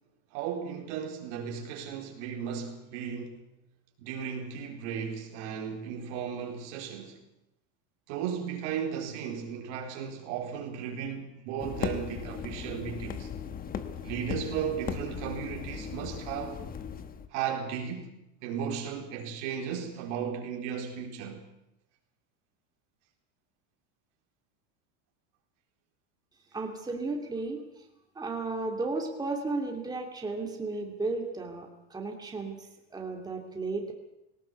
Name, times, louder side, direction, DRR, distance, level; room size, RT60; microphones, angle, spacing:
voice 1, 0.3-3.4 4.0-7.2 8.1-13.3 14.0-16.6 17.3-18.1 18.4-21.5, right 7 dB, 70° right, 2 dB, 4.4 m, -35 dB
sound 1, 11.6-17.3, left 7 dB, 25° left, 1.3 m, -37 dB
voice 2, 26.5-27.8 28.1-33.9, right 3 dB, 10° right, 1 dB, 2.6 m, -34 dB
19.0 x 17.0 x 8.2 m, 0.87 s
supercardioid pair, 140°, 36 cm